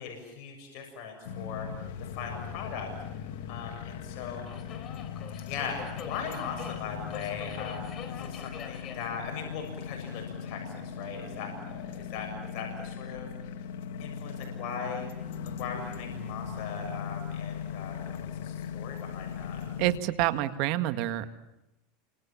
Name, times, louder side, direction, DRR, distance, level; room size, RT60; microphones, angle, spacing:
voice 1, 0.0-1.9 2.2-4.4 5.4-13.3 14.0-15.1 15.6-19.6, left 6 dB, 55° left, 2 dB, 7.2 m, -39 dB
sound 1, 1.2-20.0, left 7 dB, 80° left, 2.1 m, -39 dB
Subway metro underground, 1.8-12.3, left 7 dB, 40° left, 3.9 m, -48 dB
voice 2, 19.8-21.3, right 15 dB, 60° right, 10 dB, 1.9 m, -27 dB
29.5 x 26.5 x 7.5 m, 0.90 s
supercardioid pair, 125°, 0 cm